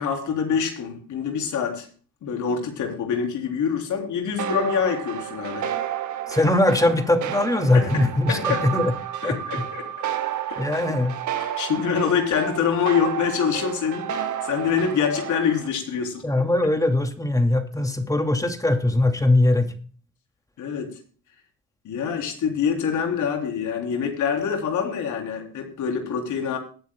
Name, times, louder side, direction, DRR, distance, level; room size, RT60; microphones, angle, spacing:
voice 1, 0.0-1.9 2.2-5.7 7.7-8.7 9.2-9.9 10.5-10.7 11.4-16.3 20.6-21.0 21.8-26.6, left 7 dB, 75° left, 3 dB, 3.7 m, -25 dB
sound 1, 4.4-15.7, right 10 dB, 75° right, 1.7 m, -31 dB
voice 2, 6.3-8.9 9.2-9.4 10.6-11.1 16.2-19.7, left 2 dB, 10° left, 6 dB, 2.4 m, -21 dB
21.0 x 9.3 x 2.3 m, 0.39 s
cardioid pair, 90°, 30 cm